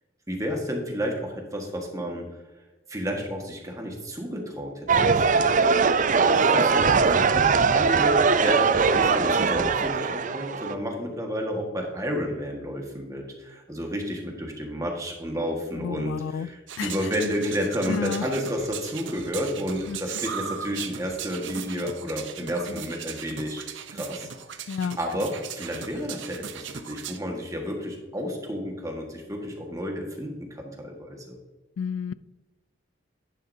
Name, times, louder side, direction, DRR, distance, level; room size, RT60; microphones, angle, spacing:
voice 1, 0.3-2.3 2.9-23.6 23.9-24.3 25.0-31.4, equal, 15° right, 1.6 m, -31 dB
sound 1, 4.9-10.7, right 5 dB, 40° right, 0.4 m, -21 dB
voice 2, 15.8-16.5 16.8-16.9 17.8-18.3 19.9-20.0 24.7-25.0 31.8-32.1, left 6 dB, 85° left, 0.3 m, -30 dB
sound 2, 16.7-27.2, right 7 dB, 75° right, 0.7 m, -38 dB
10.5 x 9.6 x 2.7 m
head